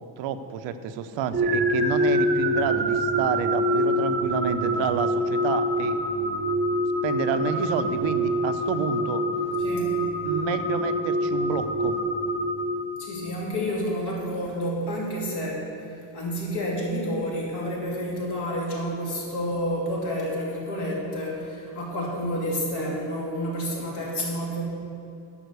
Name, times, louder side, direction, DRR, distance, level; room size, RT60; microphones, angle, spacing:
voice 1, 0.2-6.0 7.0-9.2 10.2-12.0, right 7 dB, 80° right, 9 dB, 0.8 m, -29 dB
sound 1, 1.3-13.3, equal, 20° right, 0.7 m, -25 dB
voice 2, 9.6-10.0 13.0-24.6, equal, 60° left, -3 dB, 2.9 m, -29 dB
11.0 x 5.8 x 8.1 m, 2.7 s
cardioid pair, 165°, 44 cm